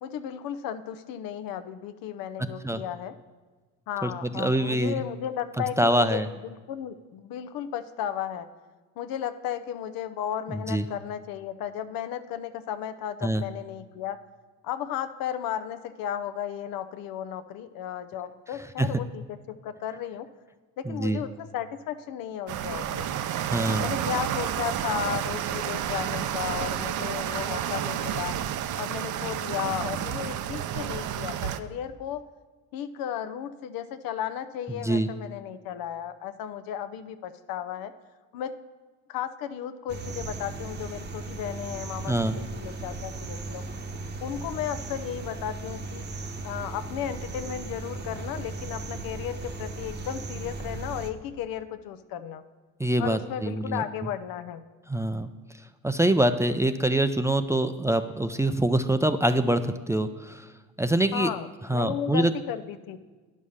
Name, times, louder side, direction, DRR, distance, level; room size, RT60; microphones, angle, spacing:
voice 1, 0.0-3.1 3.9-6.2 6.5-8.5 9.0-14.2 14.6-19.4 19.6-20.3 20.8-23.1 23.7-28.4 28.8-32.2 32.7-37.9 38.3-38.6 39.1-43.6 44.2-46.0 46.4-52.4 53.0-54.6 61.1-63.0, left 9 dB, 75° left, 10 dB, 0.7 m, -34 dB
voice 2, 4.0-5.0 5.8-6.3 10.5-10.9 13.2-13.4 18.8-18.9 20.9-21.2 23.4-23.9 34.8-35.1 42.1-42.4 52.8-53.8 54.9-55.3 55.8-60.5 60.8-61.3 61.7-62.3, right 1 dB, 10° right, 9 dB, 0.4 m, -25 dB
sound 1, 22.5-31.6, right 10 dB, 60° right, 0.6 m, -30 dB
sound 2, 39.9-51.1, right 3 dB, 30° right, 0.9 m, -37 dB
9.8 x 5.5 x 6.5 m, 1.3 s
cardioid pair, 95°, 35 cm